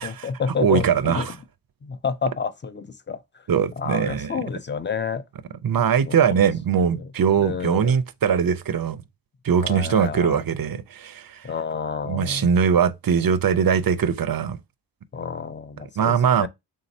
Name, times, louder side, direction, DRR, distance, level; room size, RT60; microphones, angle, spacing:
voice 1, 0.0-1.3 1.8-3.5 3.8-5.2 5.8-6.2 6.8-7.1 7.4-8.0 9.6-10.4 11.4-12.5 15.1-16.5, left 6 dB, 25° left, 0.4 m, -30 dB
voice 2, 0.6-1.3 3.5-4.3 5.6-9.0 9.4-11.5 12.1-14.6 16.0-16.5, right 7 dB, 55° right, 0.5 m, -21 dB
4.0 x 3.7 x 2.7 m
wide cardioid pair, 50°, 42 cm